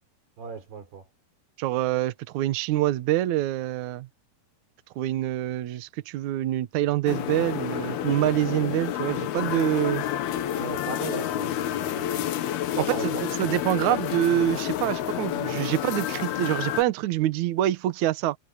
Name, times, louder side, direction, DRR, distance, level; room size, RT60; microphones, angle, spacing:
voice 1, 0.4-1.1 10.6-12.3 12.8-13.5, right 6 dB, 85° right, 6.3 m, -37 dB
voice 2, 1.6-4.1 5.0-10.0 13.4-18.4, right 13 dB, 65° right, 2.0 m, -26 dB
sound 1, 7.1-16.8, left 11 dB, 80° left, 3.3 m, -29 dB
omnidirectional pair, 4.5 m